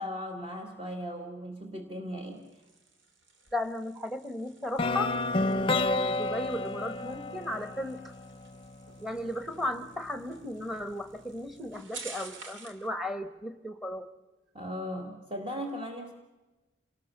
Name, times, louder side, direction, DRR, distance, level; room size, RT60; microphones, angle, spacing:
voice 1, 0.0-2.5 14.5-16.1, equal, 30° right, 3 dB, 1.9 m, -37 dB
sound 1, 2.2-12.9, right 4 dB, 85° right, 3.0 m, -51 dB
voice 2, 3.5-8.1 9.0-14.1, left 1 dB, ahead, 10 dB, 1.3 m, -35 dB
sound 2, 4.8-8.7, left 2 dB, 25° left, 0.8 m, -30 dB
27.5 x 19.5 x 6.7 m, 1.1 s
head